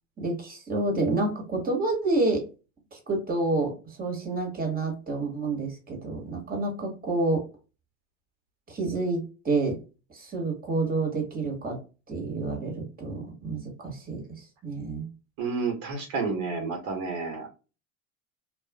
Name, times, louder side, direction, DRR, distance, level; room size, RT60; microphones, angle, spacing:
voice 1, 0.2-2.4 2.9-7.4 8.7-9.8 10.1-11.8 12.1-15.1, right 2 dB, 20° right, 1 dB, 1.4 m, -29 dB
voice 2, 15.4-17.5, right 4 dB, 60° right, 2 dB, 1.1 m, -30 dB
2.5 x 2.4 x 2.2 m, 0.32 s
supercardioid pair, 90°, 41 cm